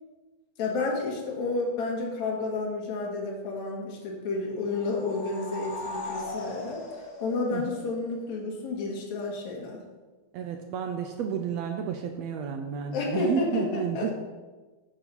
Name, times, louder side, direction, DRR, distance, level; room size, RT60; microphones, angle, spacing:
voice 1, 0.6-6.8 7.2-9.8 12.9-14.1, left 3 dB, 65° left, -2 dB, 3.0 m, -30 dB
sound 1, 4.7-8.2, left 2 dB, 85° left, 4.1 m, -39 dB
voice 2, 10.3-14.1, right 7 dB, 80° right, 5 dB, 1.6 m, -31 dB
9.5 x 6.0 x 5.5 m, 1.3 s
omnidirectional pair, 3.6 m